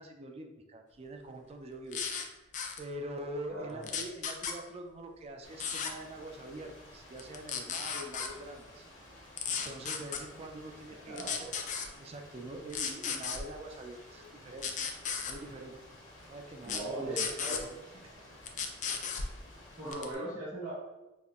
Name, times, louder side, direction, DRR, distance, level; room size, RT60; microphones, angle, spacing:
voice 1, 0.0-2.0 2.3-2.5 2.8-8.8 9.5-11.6 12.0-14.7 15.2-15.8 16.3-17.8 18.2-18.3, right 1 dB, 30° right, 4 dB, 0.4 m, -44 dB
sound 1, 1.9-2.3 2.5-2.8 3.8-4.6 5.6-5.9 7.2-8.3 9.4-10.2 11.2-11.9 12.7-13.4 14.6-15.4 16.6-16.8 17.2-17.6 18.5-19.3 19.9-20.1, left 6 dB, 40° left, 0.3 m, -34 dB
voice 2, 3.5-4.0 10.8-11.5 16.6-17.6 19.8-20.7, right 1 dB, 75° right, -12 dB, 1.4 m, -39 dB
Rain, 5.4-19.9, left 1 dB, 65° left, 1.0 m, -54 dB
5.3 x 2.1 x 2.3 m, 1.1 s
head